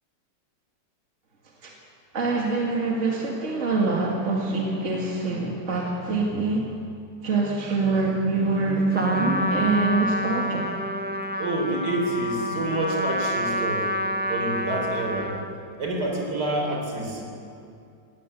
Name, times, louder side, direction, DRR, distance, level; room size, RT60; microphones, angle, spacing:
voice 1, 2.1-6.7 7.2-10.7, right 3 dB, 45° right, -2 dB, 2.3 m, -25 dB
Trumpet, 8.9-15.6, equal, 15° right, 0.4 m, -28 dB
voice 2, 11.4-13.9 14.3-15.4 15.8-17.2, right 1 dB, 70° right, 1 dB, 4.3 m, -28 dB
19.5 x 17.5 x 8.3 m, 2.5 s
omnidirectional pair, 1.9 m